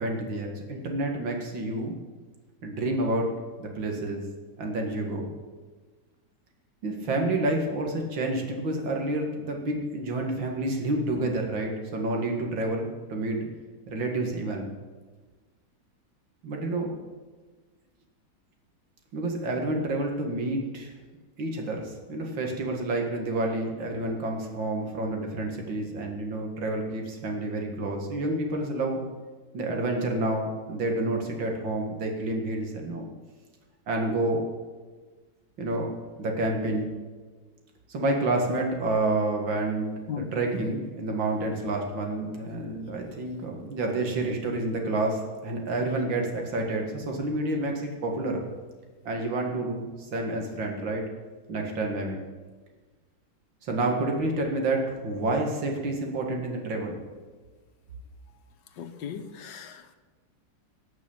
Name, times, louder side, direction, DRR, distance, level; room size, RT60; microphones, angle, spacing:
voice 1, 0.0-2.0 2.6-3.3 3.6-4.2 4.6-5.3 6.8-13.4 13.9-14.7 16.4-16.9 19.1-20.9 21.4-29.0 29.5-33.1 33.9-34.5 35.6-35.9 36.2-36.9 37.9-39.9 40.2-48.4 49.1-51.0 51.5-52.2 53.6-57.0, right 2 dB, 85° right, 2 dB, 2.7 m, -29 dB
voice 2, 58.8-60.0, left 8 dB, 70° left, 8 dB, 1.7 m, -37 dB
18.5 x 6.3 x 8.7 m, 1.4 s
omnidirectional pair, 2.0 m